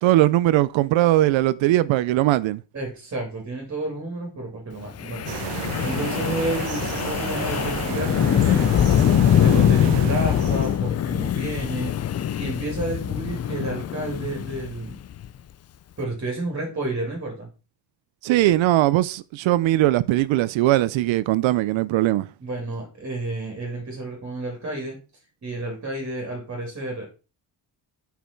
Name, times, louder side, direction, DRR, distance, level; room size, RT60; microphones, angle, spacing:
voice 1, 0.0-2.6 18.2-22.3, right 15 dB, 85° right, 0.6 m, -20 dB
voice 2, 2.7-8.7 9.4-15.0 16.0-17.5 22.4-25.0 25.4-27.1, right 2 dB, 30° right, 3.2 m, -31 dB
Wind, 5.0-15.3, left 10 dB, 35° left, 0.5 m, -23 dB
sound 1, 5.3-10.8, right 12 dB, 65° right, 0.9 m, -33 dB
8.2 x 5.9 x 4.5 m
cardioid pair, 145°, 45 cm